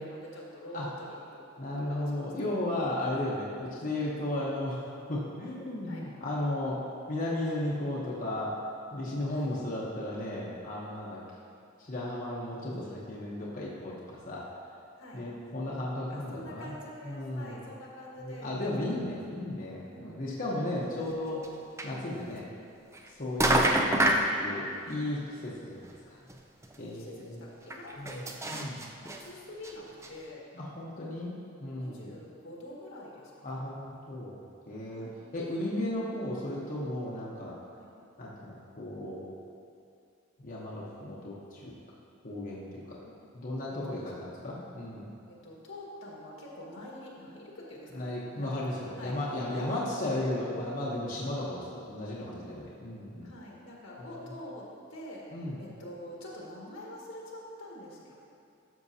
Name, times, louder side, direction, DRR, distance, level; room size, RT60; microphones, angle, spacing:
voice 1, 0.0-1.5 1.9-2.5 2.9-3.0 5.8-6.1 9.3-9.5 11.4-11.6 15.0-15.2 16.1-18.5 18.9-19.0 19.8-20.3 26.8-28.4 29.0-30.4 31.7-33.6 34.9-35.2 37.7-37.9 43.0-43.1 43.8-44.0 45.3-49.7 53.2-55.2 55.6-58.1, left 1 dB, 80° left, -4 dB, 1.7 m, -46 dB
voice 2, 1.6-4.8 5.1-6.8 7.1-8.5 8.9-11.2 11.9-14.4 15.1-16.7 17.0-17.6 18.2-21.4 21.8-22.4 23.1-24.1 24.4-25.8 26.1-26.2 26.8-27.4 28.0-28.2 28.5-28.8 30.5-31.3 31.6-32.1 33.4-34.4 34.7-35.1 35.3-37.6 38.2-39.2 40.4-41.7 42.2-43.0 43.3-45.1 47.9-53.3 54.0-54.3 55.3-55.6, left 1 dB, 45° left, -6 dB, 1.0 m, -35 dB
sound 1, 21.4-21.5 21.8-21.9 22.9-23.1 23.4-24.3 25.8-25.9 26.3-26.4 26.6-26.7 27.7-29.2 29.6-29.7 30.0-30.1, right 1 dB, 15° right, 0.5 m, -26 dB
12.0 x 6.5 x 2.8 m, 2.6 s
head